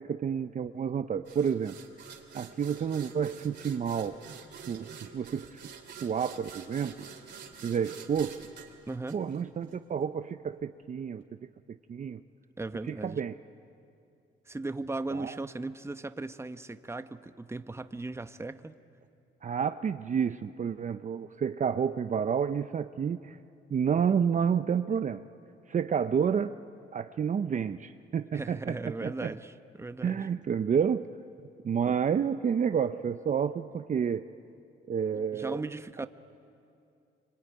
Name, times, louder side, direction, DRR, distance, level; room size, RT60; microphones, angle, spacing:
voice 1, 0.0-1.8 2.3-4.2 4.7-5.6 6.0-7.1 7.6-8.4 9.1-11.2 11.7-12.2 12.9-13.3 15.1-15.4 19.4-23.4 23.7-25.2 25.7-26.5 26.9-29.3 30.0-31.1 31.6-34.3 34.9-35.6, right 7 dB, 40° right, 10 dB, 0.6 m, -30 dB
sound 1, 1.3-9.8, right 6 dB, 60° right, 3.3 m, -48 dB
voice 2, 8.9-9.2 12.6-13.2 14.5-18.8 28.3-30.2 31.9-32.0 35.1-36.1, right 2 dB, 15° right, 10 dB, 1.0 m, -37 dB
25.5 x 24.5 x 9.4 m, 2.6 s
cardioid pair, 90°, 20 cm